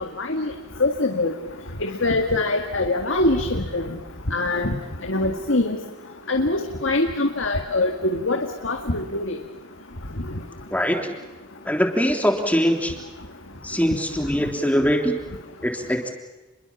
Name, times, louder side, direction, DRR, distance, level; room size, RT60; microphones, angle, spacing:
voice 1, 0.2-0.5 0.8-1.3 1.8-3.8 4.3-4.7 5.1-5.8 6.3-9.4, left 2 dB, 65° left, 4 dB, 2.0 m, -23 dB
voice 2, 11.6-12.9 13.6-15.1 15.6-16.1, equal, 5° left, 3 dB, 3.3 m, -22 dB
30.0 x 22.5 x 7.3 m, 1.1 s
head